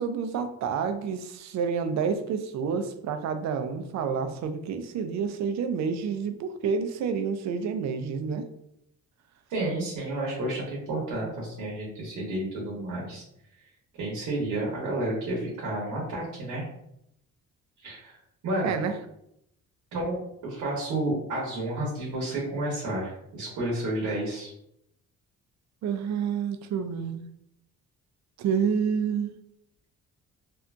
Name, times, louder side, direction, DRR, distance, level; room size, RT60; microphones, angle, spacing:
voice 1, 0.0-8.5 18.6-18.9 25.8-27.2 28.4-29.3, right 6 dB, 65° right, 8 dB, 0.4 m, -29 dB
voice 2, 9.5-13.2 14.0-16.6 17.8-18.2 18.4-18.8 19.9-24.5, right 1 dB, 85° right, -4 dB, 1.0 m, -31 dB
2.7 x 2.5 x 2.2 m, 0.76 s
cardioid pair, 90°, 30 cm